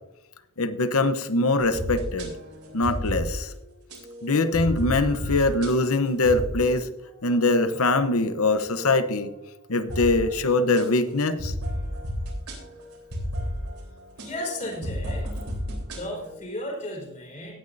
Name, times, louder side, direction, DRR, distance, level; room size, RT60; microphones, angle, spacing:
voice 1, 0.6-2.3 2.7-3.5 4.2-6.9 7.2-9.3 9.7-11.5, left 2 dB, 70° left, 11 dB, 0.9 m, -23 dB
sound 1, 1.6-6.9 7.3-7.8 8.2-9.1 9.9-16.3, equal, 85° right, 3.8 m, -34 dB
voice 2, 14.2-15.3 15.7-17.6, left 1 dB, 35° left, -1 dB, 4.4 m, -34 dB
17.0 x 9.7 x 2.7 m, 0.90 s
head